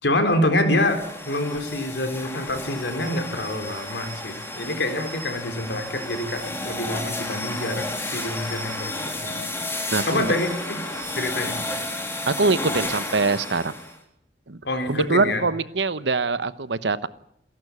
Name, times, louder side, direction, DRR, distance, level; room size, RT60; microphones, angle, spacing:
voice 1, 0.0-9.4 10.1-10.8 11.2-11.6 14.6-15.5, left 1 dB, 80° left, 6 dB, 3.9 m, -26 dB
sound 1, 0.7-14.0, left 2 dB, 15° left, 3.3 m, -32 dB
voice 2, 9.9-10.3 12.3-13.7 14.5-14.6 14.9-17.1, right 3 dB, 90° right, 15 dB, 1.0 m, -23 dB
28.0 x 11.5 x 9.6 m, 0.72 s
head